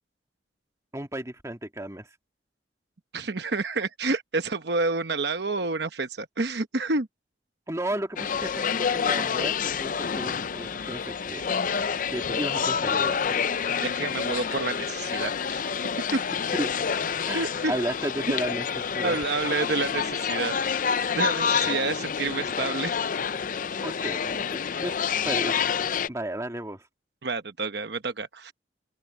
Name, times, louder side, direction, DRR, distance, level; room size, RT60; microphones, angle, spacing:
voice 1, 0.9-2.1 7.7-11.4 12.1-13.4 16.5-16.7 17.2-19.2 23.8-24.9 25.2-25.7 26.1-26.8, right 1 dB, 15° right, 2.1 m, -34 dB
voice 2, 3.1-7.1 13.8-15.6 16.1-16.2 17.3-17.7 19.0-20.8 21.1-23.1 27.2-28.5, right 3 dB, 70° right, 1.0 m, -29 dB
sound 1, 8.2-26.1, left 6 dB, 50° left, 0.5 m, -28 dB
open air
head